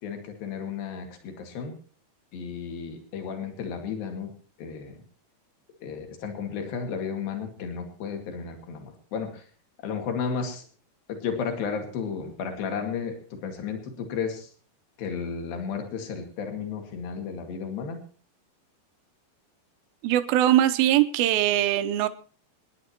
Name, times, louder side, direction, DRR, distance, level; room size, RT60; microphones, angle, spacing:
voice 1, 0.0-1.7 2.3-4.3 4.6-5.0 5.8-9.5 9.8-10.6 11.1-14.5 15.0-18.0, left 6 dB, 65° left, 4 dB, 4.0 m, -33 dB
voice 2, 20.0-22.1, right 13 dB, 75° right, 10 dB, 2.6 m, -21 dB
26.5 x 10.5 x 3.0 m, 0.41 s
omnidirectional pair, 4.8 m